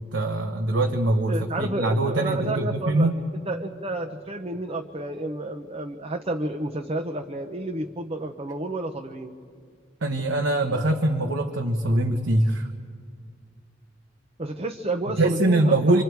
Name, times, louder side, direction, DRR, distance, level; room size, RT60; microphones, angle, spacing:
voice 1, 0.1-3.2 10.0-12.7 15.1-16.0, right 2 dB, 85° right, 4 dB, 1.2 m, -23 dB
voice 2, 1.3-3.1 3.5-9.3 14.4-16.0, right 2 dB, 35° right, 3 dB, 0.9 m, -31 dB
26.5 x 26.5 x 4.7 m, 2.1 s
head